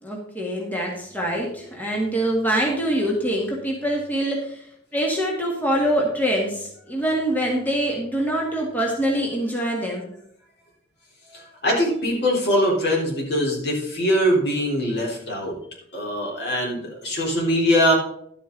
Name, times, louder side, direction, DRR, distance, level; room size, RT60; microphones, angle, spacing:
voice 1, 0.0-4.6 4.9-10.1, right 1 dB, 10° left, -2 dB, 1.8 m, -24 dB
voice 2, 11.3-15.6 15.9-17.9, equal, 60° left, -2 dB, 3.5 m, -22 dB
11.5 x 8.2 x 3.9 m, 0.70 s
head